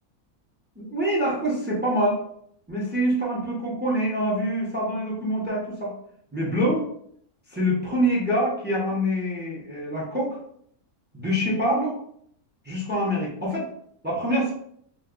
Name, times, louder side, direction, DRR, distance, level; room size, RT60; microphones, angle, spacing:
voice 1, 0.8-2.2 2.7-5.9 6.3-6.9 7.5-10.4 11.1-12.0 12.6-13.7 14.0-14.5, equal, 10° right, -4 dB, 0.5 m, -25 dB
2.5 x 2.3 x 3.7 m, 0.67 s
omnidirectional pair, 1.6 m